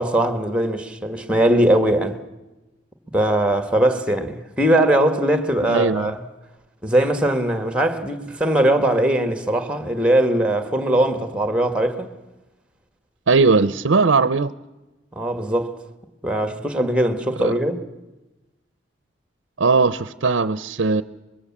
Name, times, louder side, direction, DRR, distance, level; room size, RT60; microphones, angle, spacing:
voice 1, 0.0-2.2 3.1-6.2 6.8-12.1 15.1-15.7 16.2-17.8, right 1 dB, 5° right, 1.7 m, -20 dB
voice 2, 5.7-6.1 13.3-14.5 17.4-17.5 19.6-21.0, right 4 dB, 85° right, 0.7 m, -18 dB
25.0 x 22.0 x 7.3 m
head